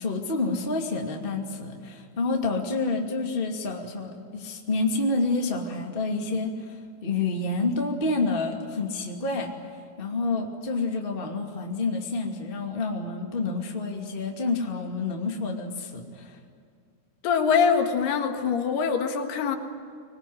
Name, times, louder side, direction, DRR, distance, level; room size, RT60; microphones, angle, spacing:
voice 1, 0.0-6.7 7.0-9.5 10.0-16.4, left 3 dB, 20° left, 1 dB, 1.9 m, -28 dB
voice 2, 17.2-19.6, left 6 dB, 85° left, 5 dB, 3.7 m, -23 dB
25.0 x 20.5 x 9.6 m, 2.2 s
omnidirectional pair, 4.6 m